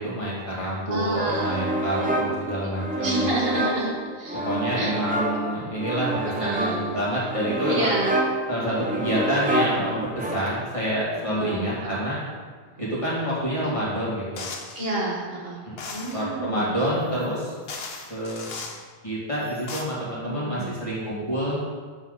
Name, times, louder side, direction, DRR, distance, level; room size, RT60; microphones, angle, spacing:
voice 1, 0.0-3.3 4.4-7.9 8.5-12.2 12.8-14.4 15.6-15.8 16.1-17.5 18.1-18.5 19.0-21.6, right 1 dB, 30° left, -9 dB, 2.6 m, -27 dB
voice 2, 0.9-1.6 1.9-2.4 3.0-3.9 4.2-4.4 4.8-4.9 6.2-7.0 7.6-8.2 11.3-12.0 12.7-12.9 14.7-15.6 15.9-16.8 20.1-20.7, right 2 dB, 65° right, -5 dB, 2.0 m, -29 dB
sound 1, 1.3-10.8, right 1 dB, 10° right, 0.5 m, -28 dB
sound 2, 14.4-14.8 15.8-16.2 17.2-17.3 17.7-18.8 19.4-19.8, left 4 dB, 70° left, 1.1 m, -36 dB
7.3 x 7.3 x 4.1 m, 1.5 s
omnidirectional pair, 1.1 m